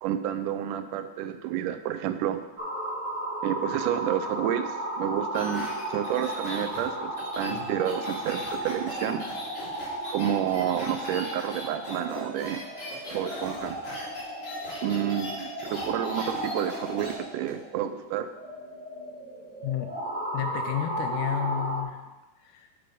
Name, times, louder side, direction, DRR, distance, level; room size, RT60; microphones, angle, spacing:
voice 1, 0.0-2.4 3.4-9.3 10.1-12.7 13.1-13.8 14.8-18.3, right 10 dB, 85° right, 10 dB, 2.1 m, -30 dB
sound 1, 2.6-21.8, right 1 dB, 45° right, 2.3 m, -35 dB
sound 2, 5.3-17.1 17.5-17.6, left 1 dB, 45° left, 4.5 m, -40 dB
voice 2, 20.3-22.0 22.4-22.7, left 10 dB, 90° left, 6 dB, 2.2 m, -31 dB
9.6 x 5.0 x 5.3 m, 1.1 s
omnidirectional pair, 3.7 m